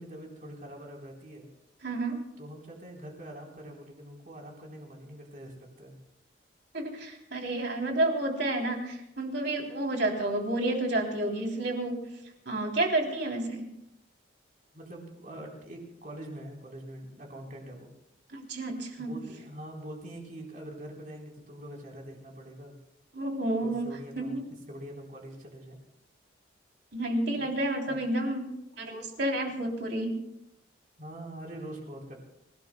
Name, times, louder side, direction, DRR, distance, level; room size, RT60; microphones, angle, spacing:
voice 1, 0.0-1.5 2.4-6.0 14.7-17.9 19.0-22.7 23.6-25.8 27.4-27.5 27.9-28.0 31.0-32.2, right 1 dB, 45° right, -1 dB, 4.0 m, -44 dB
voice 2, 1.8-2.2 6.7-12.0 12.4-13.6 18.3-19.2 23.1-24.4 26.9-28.5 28.8-30.2, right 1 dB, 60° right, 1 dB, 3.3 m, -30 dB
27.5 x 17.0 x 2.3 m, 0.81 s
head